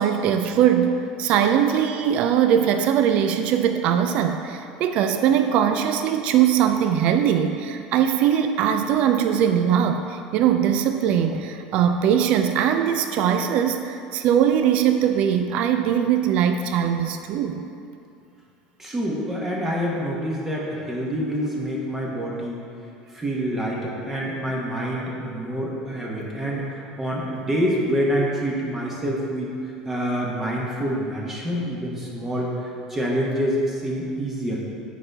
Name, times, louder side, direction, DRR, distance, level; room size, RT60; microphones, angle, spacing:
voice 1, 0.0-17.7, right 9 dB, 60° right, 7 dB, 0.3 m, -21 dB
voice 2, 18.8-22.6 23.1-29.5 29.9-34.6, equal, 15° right, -3 dB, 1.1 m, -26 dB
8.5 x 4.1 x 3.4 m, 2.6 s
supercardioid pair, 110°, 2 cm